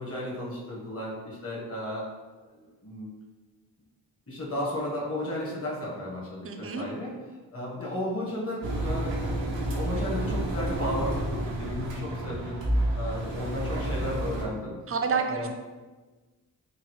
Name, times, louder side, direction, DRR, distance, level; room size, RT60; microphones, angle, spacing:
voice 1, 0.0-2.1 2.5-3.1 4.3-7.1 7.5-9.2 9.5-12.6 12.9-14.8 15.1-15.5, left 1 dB, 30° left, -5 dB, 1.3 m, -34 dB
voice 2, 6.4-6.9 14.9-15.5, right 5 dB, 30° right, 4 dB, 0.5 m, -28 dB
Engine, 8.6-14.4, right 1 dB, 90° right, 0.6 m, -30 dB
3.8 x 2.0 x 3.1 m, 1.3 s
cardioid pair, 50°, 43 cm